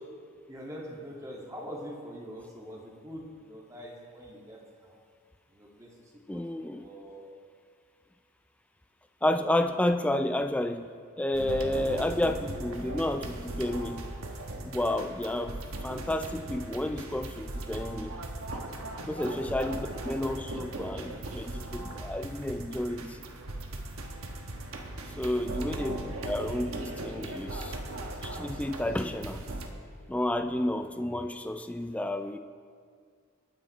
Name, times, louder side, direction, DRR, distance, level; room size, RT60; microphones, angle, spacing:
voice 1, 0.5-5.0 5.5-7.3 15.1-15.5 25.6-26.0 30.5-30.8, equal, 15° right, -4 dB, 2.1 m, -45 dB
voice 2, 6.3-6.8 9.2-14.1 14.6-18.2 19.1-23.2 25.2-27.8 28.2-29.4 30.1-32.4, left 1 dB, 5° left, 7 dB, 0.3 m, -31 dB
sound 1, 11.3-29.7, right 1 dB, 80° right, 1.2 m, -38 dB
20.5 x 9.4 x 3.2 m, 2.1 s
head